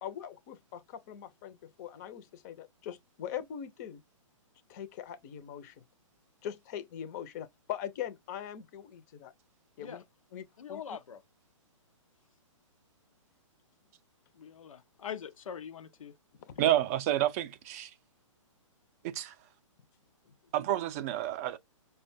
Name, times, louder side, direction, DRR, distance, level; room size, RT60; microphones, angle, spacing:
voice 1, 0.0-4.0 4.7-5.8 6.4-9.3 9.8-10.0 10.3-10.8 16.4-16.5, left 10 dB, 35° left, 0.6 m, -41 dB
voice 2, 10.6-11.2 14.3-16.2 20.3-20.4, left 8 dB, 85° left, 0.5 m, -43 dB
voice 3, 16.6-17.9 19.0-19.3 20.5-21.6, right 13 dB, 30° right, 0.4 m, -29 dB
5.3 x 2.2 x 2.6 m
hypercardioid pair, 145°, 17 cm